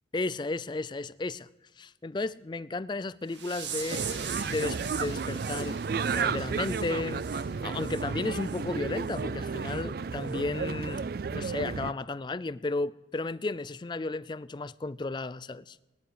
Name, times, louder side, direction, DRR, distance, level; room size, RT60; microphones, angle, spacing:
voice 1, 0.1-1.5 1.8-4.0 4.5-5.8 6.1-15.8, left 3 dB, 25° left, 0.4 m, -34 dB
sound 1, 3.3-8.0 8.4-8.6 9.1-9.2 9.7-9.8 10.3-10.4, right 7 dB, 75° right, 2.0 m, -41 dB
sound 2, 3.9-11.9, right 5 dB, 50° right, 0.4 m, -32 dB
19.0 x 10.5 x 5.0 m
head